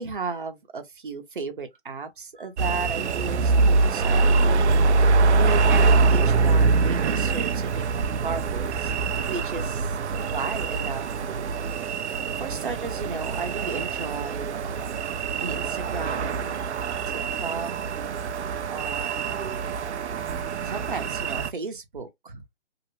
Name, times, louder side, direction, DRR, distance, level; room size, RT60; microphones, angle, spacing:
voice 1, 0.0-5.0 5.3-11.5 12.4-15.0 15.4-16.7 17.1-17.7 18.7-19.4 20.6-22.4, right 4 dB, 45° right, 0.8 m, -35 dB
sound 1, 2.6-21.5, right 4 dB, 75° right, 0.5 m, -24 dB
2.9 x 2.6 x 2.9 m
hypercardioid pair, 175°, 35 cm